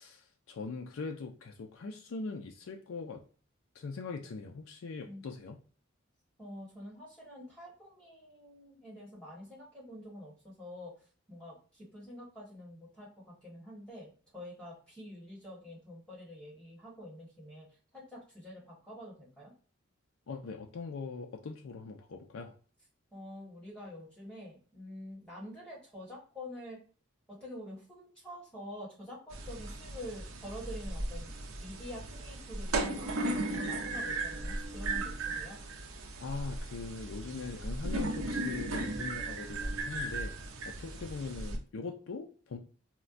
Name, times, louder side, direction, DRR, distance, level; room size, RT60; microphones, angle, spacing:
voice 1, 0.0-3.2 3.7-5.6 20.3-22.5 36.2-40.3 40.7-42.6, left 4 dB, 70° left, 3 dB, 0.4 m, -41 dB
voice 2, 6.4-10.9 11.3-17.7 17.9-19.5 23.1-26.8 27.3-31.3 31.6-35.6, left 1 dB, 5° left, -5 dB, 1.3 m, -47 dB
sound 1, 29.3-41.6, right 2 dB, 80° right, 0.5 m, -36 dB
4.3 x 2.1 x 2.4 m, 0.41 s
head